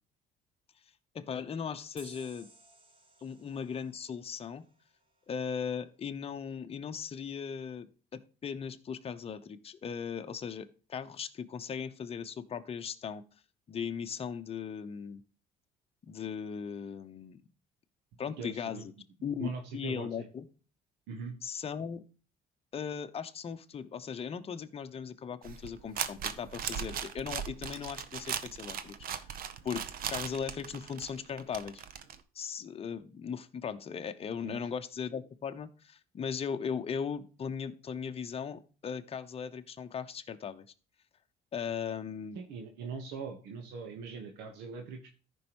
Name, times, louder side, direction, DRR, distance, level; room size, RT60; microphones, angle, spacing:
voice 1, 1.1-2.5 3.2-4.6 5.3-13.2 13.7-15.2 16.1-17.4 18.2-18.9 19.2-20.5 21.4-22.0 22.7-28.9 29.3-29.4 29.6-29.8 30.1-31.8 32.3-40.7 41.5-42.4, left 7 dB, 35° left, 8 dB, 0.9 m, -38 dB
sound 1, 2.0-5.3, right 3 dB, 30° right, 1.1 m, -58 dB
voice 2, 18.3-18.8 19.4-20.3 21.1-21.3 34.4-34.6 42.3-45.0, right 5 dB, 85° right, 3 dB, 1.2 m, -41 dB
sound 2, 25.4-32.1, right 8 dB, 60° right, 0.8 m, -38 dB
14.0 x 5.4 x 3.0 m, 0.37 s
cardioid pair, 110°, 17 cm